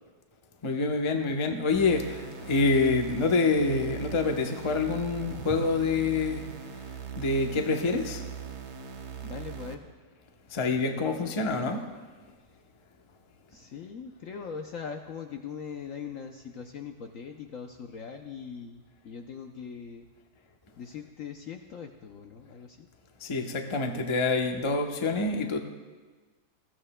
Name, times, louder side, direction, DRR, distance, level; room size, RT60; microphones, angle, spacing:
voice 1, 0.6-6.5 7.2-8.2 10.5-11.8 23.2-25.6, left 3 dB, 30° left, 3 dB, 0.6 m, -26 dB
sound 1, 1.7-9.7, right 7 dB, 65° right, 1.4 m, -40 dB
voice 2, 9.2-9.9 10.9-11.0 11.4-11.5 13.5-20.1 20.8-22.9, left 6 dB, 65° left, 4 dB, 0.9 m, -41 dB
20.0 x 14.5 x 2.2 m, 1.4 s
omnidirectional pair, 1.9 m